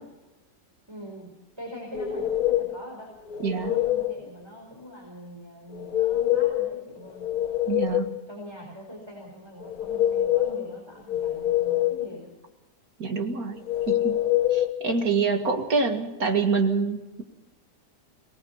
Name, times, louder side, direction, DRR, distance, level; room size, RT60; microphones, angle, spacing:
voice 1, 0.9-1.3 1.6-3.1 3.4-7.3 8.3-12.3, equal, 15° right, -2 dB, 4.8 m, -43 dB
sound 1, 1.9-2.8 3.3-4.1 5.7-6.7 7.1-8.2 9.6-10.6 11.1-12.1 13.7-14.7, left 13 dB, 65° left, 1.5 m, -25 dB
voice 2, 3.4-3.8 7.7-8.1 13.0-14.2 14.5-17.2, right 4 dB, 60° right, 5 dB, 2.3 m, -26 dB
23.5 x 19.5 x 5.7 m, 1.1 s
omnidirectional pair, 1.8 m